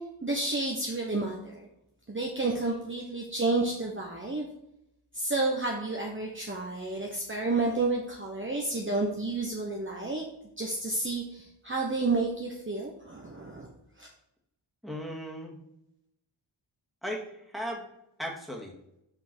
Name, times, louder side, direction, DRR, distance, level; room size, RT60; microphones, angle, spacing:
voice 1, 0.2-1.7 2.1-4.5 5.1-10.2 10.6-13.7 14.0-14.1, right 3 dB, 25° right, 0 dB, 1.1 m, -30 dB
voice 2, 14.8-15.6 17.0-17.8 18.2-18.7, equal, ahead, -1 dB, 2.0 m, -36 dB
5.3 x 5.2 x 6.2 m, 0.81 s
wide cardioid pair, 90°, 48 cm